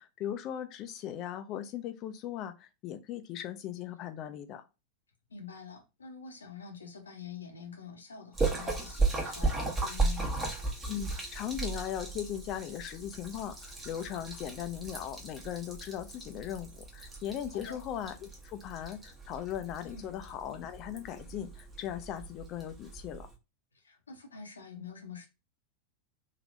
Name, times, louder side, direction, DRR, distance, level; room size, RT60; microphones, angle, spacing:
voice 1, 0.0-4.6 10.8-23.3, left 10 dB, 35° left, 0.5 m, -38 dB
voice 2, 5.3-10.3 17.5-17.8 19.8-20.1 23.7-25.3, left 6 dB, 75° left, 0.8 m, -46 dB
Splash splatter, 8.3-23.3, right 3 dB, 15° right, 1.0 m, -36 dB
3.3 x 2.9 x 2.5 m
figure-of-eight pair, 90°, 0 cm